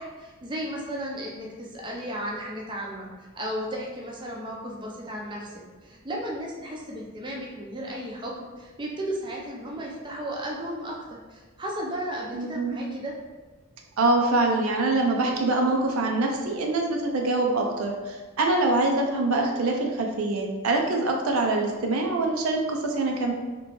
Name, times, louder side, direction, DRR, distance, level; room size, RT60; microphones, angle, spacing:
voice 1, 0.0-5.5 5.8-13.1, right 1 dB, 20° right, -2 dB, 0.5 m, -34 dB
voice 2, 12.3-12.8 14.0-23.3, right 2 dB, 85° right, 1 dB, 0.5 m, -24 dB
3.2 x 3.0 x 3.0 m, 1.3 s
head